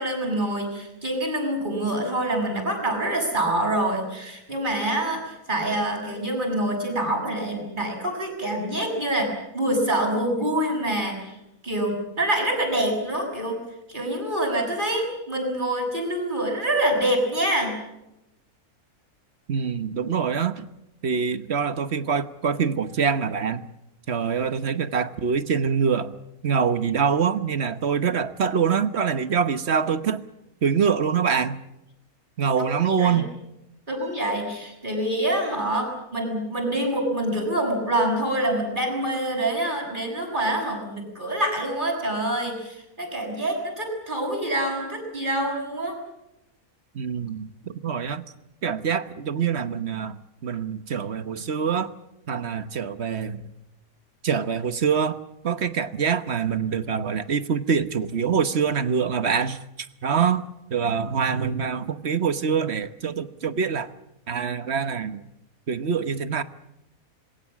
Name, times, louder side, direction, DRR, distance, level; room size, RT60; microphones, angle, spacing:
voice 1, 0.0-11.4 11.6-13.6 13.9-17.7 32.6-33.2 33.9-46.0, right 1 dB, 30° right, 2 dB, 7.1 m, -26 dB
voice 2, 19.5-20.7 21.0-23.7 24.1-26.2 26.4-30.2 30.6-31.6 32.4-33.3 46.9-48.3 48.6-51.9 52.3-53.4 54.2-55.2 55.4-59.6 60.0-60.4 60.7-63.9 64.3-65.3 65.7-66.4, right 6 dB, 50° right, 12 dB, 1.3 m, -25 dB
26.5 x 22.0 x 7.4 m, 0.90 s
omnidirectional pair, 1.6 m